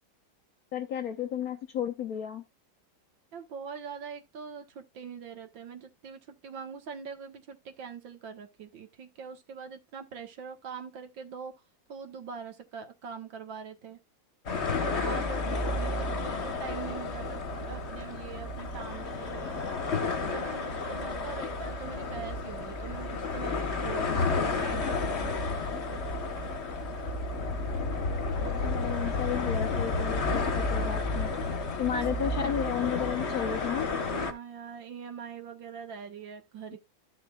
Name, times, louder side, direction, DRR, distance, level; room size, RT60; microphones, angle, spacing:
voice 1, 0.7-2.4 28.6-31.3 31.8-33.9, left 9 dB, 65° left, 0.9 m, -33 dB
voice 2, 3.3-11.5 11.9-14.0 14.7-19.6 20.1-25.3 31.9-32.0 34.0-36.8, right 6 dB, 70° right, 2.2 m, -43 dB
sound 1, 14.5-34.3, left 3 dB, 40° left, 1.2 m, -31 dB
13.5 x 6.3 x 2.4 m
omnidirectional pair, 2.2 m